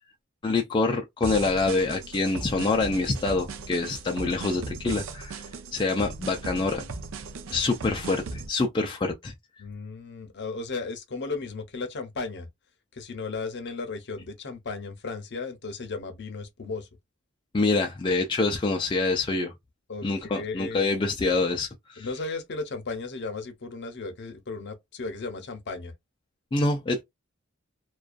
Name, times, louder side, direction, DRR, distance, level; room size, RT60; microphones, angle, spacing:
voice 1, 0.4-5.4 5.7-6.8 7.5-9.3 17.5-19.5 20.0-22.1 26.5-27.0, left 3 dB, 25° left, 0.3 m, -26 dB
sound 1, 1.2-8.5, right 4 dB, 65° right, 0.5 m, -38 dB
voice 2, 9.6-12.5 12.9-16.9 19.9-21.0 22.0-25.9, left 3 dB, 55° left, 0.6 m, -35 dB
2.5 x 2.2 x 2.2 m
head